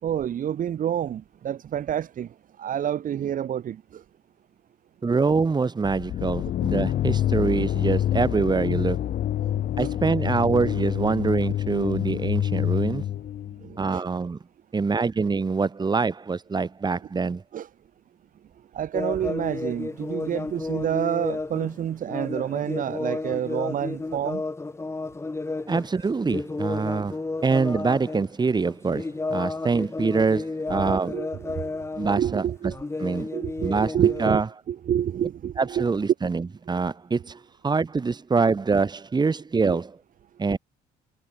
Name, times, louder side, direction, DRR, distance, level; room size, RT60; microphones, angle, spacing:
voice 1, 0.0-4.0 9.4-9.9 13.6-14.0 17.5-17.7 18.7-24.4 30.7-31.9 32.1-32.8 33.3-34.4 34.7-35.9 39.7-39.8, right 10 dB, 55° right, 3.2 m, -28 dB
voice 2, 5.0-9.1 9.8-13.0 13.8-14.4 14.7-17.4 25.7-27.2 27.4-31.2 32.0-32.4 33.0-33.3 33.6-34.5 35.6-40.0 40.4-40.6, right 4 dB, 25° right, 7.0 m, -25 dB
sound 1, 5.8-13.7, left 11 dB, 60° left, 5.7 m, -27 dB
sound 2, 18.9-28.3 28.6-32.3 32.6-34.4, left 3 dB, 15° left, 2.6 m, -32 dB
cardioid pair, 110°, 17 cm